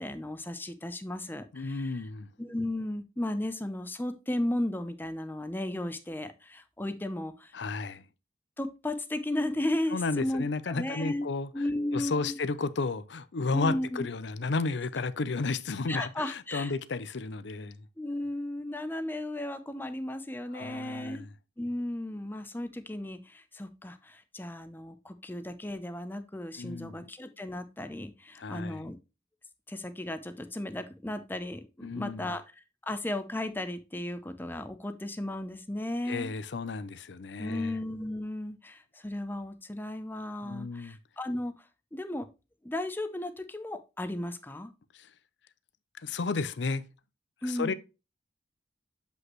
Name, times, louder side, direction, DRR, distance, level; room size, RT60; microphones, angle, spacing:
voice 1, 0.0-2.0 2.4-7.5 8.6-11.3 11.5-12.4 13.5-14.1 15.9-16.7 18.0-21.2 21.6-29.0 29.7-32.4 32.8-36.3 37.4-41.5 41.9-42.3 42.6-44.7 47.4-47.7, left 1 dB, 10° left, 0.6 m, -35 dB
voice 2, 1.5-2.3 7.5-8.0 9.9-11.5 11.9-17.8 20.5-21.3 26.6-27.1 28.4-28.8 31.8-32.3 36.1-37.8 40.4-41.0 44.9-45.1 45.9-46.8 47.4-47.7, left 3 dB, 65° left, 0.5 m, -33 dB
8.0 x 5.2 x 3.0 m
head